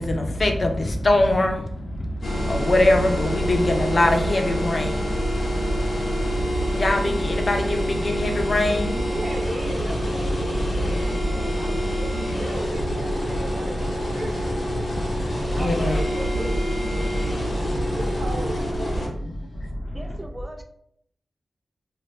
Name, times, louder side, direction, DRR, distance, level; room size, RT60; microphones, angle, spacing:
voice 1, 0.0-9.1 11.1-11.2 11.7-11.8 13.8-13.9 14.7-16.0 17.0-18.0 19.1-20.2, left 1 dB, 50° left, 0.5 m, -24 dB
sound 1, 2.2-19.1, equal, 75° left, 1.0 m, -26 dB
voice 2, 9.0-15.0 15.5-16.8 17.9-19.2, right 2 dB, 65° right, 0.6 m, -36 dB
voice 3, 19.9-20.6, right 1 dB, 30° right, 0.5 m, -39 dB
2.7 x 2.2 x 3.3 m
cardioid pair, 60°, 0 cm